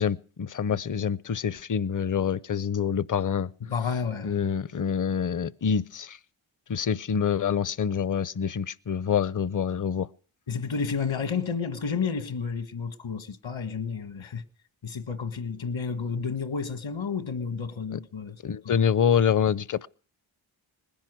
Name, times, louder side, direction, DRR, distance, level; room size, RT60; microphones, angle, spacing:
voice 1, 0.0-3.5 4.2-6.2 6.7-10.1 18.4-19.9, left 7 dB, 40° left, 0.7 m, -26 dB
voice 2, 3.6-4.4 10.5-14.4 14.8-18.4 18.8-18.9, left 5 dB, 70° left, 1.6 m, -31 dB
20.0 x 10.5 x 6.2 m
cardioid pair, 50°, 48 cm